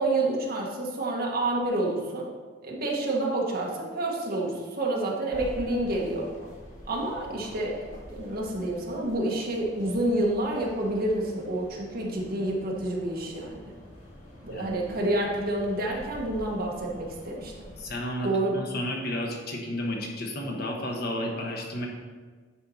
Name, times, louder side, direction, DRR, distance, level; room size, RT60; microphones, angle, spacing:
voice 1, 0.0-2.3 2.6-6.3 6.9-7.8 8.1-13.7 14.4-17.7 18.2-18.5, right 2 dB, 50° right, -2 dB, 1.4 m, -28 dB
sound 1, 5.3-18.0, equal, 40° left, 1.8 m, -46 dB
voice 2, 14.5-15.0 17.8-21.9, left 1 dB, 55° left, 0 dB, 1.2 m, -32 dB
9.9 x 4.4 x 4.2 m, 1.5 s
head